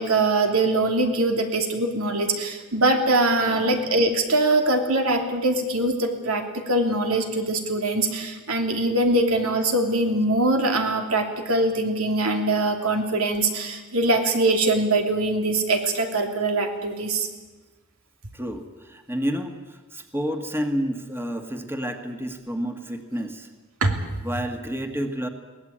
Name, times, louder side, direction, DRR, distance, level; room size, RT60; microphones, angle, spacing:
voice 1, 0.0-17.3 23.8-24.0, right 2 dB, 85° right, 3 dB, 3.0 m, -22 dB
voice 2, 3.4-3.9 18.3-23.5 24.2-25.3, equal, 10° right, 5 dB, 1.6 m, -30 dB
22.5 x 17.5 x 8.8 m, 1.3 s
head